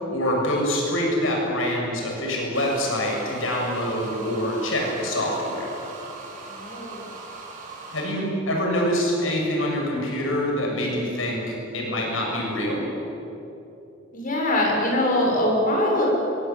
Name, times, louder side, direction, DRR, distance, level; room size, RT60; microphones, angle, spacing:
voice 1, 0.1-5.7 7.9-12.8, equal, 85° left, -1 dB, 7.4 m, -25 dB
sound 1, 2.5-8.2, right 3 dB, 40° right, 6.0 m, -40 dB
voice 2, 6.4-7.1 14.1-16.1, left 1 dB, 45° left, -1 dB, 7.3 m, -23 dB
25.0 x 22.0 x 9.0 m, 2.9 s
head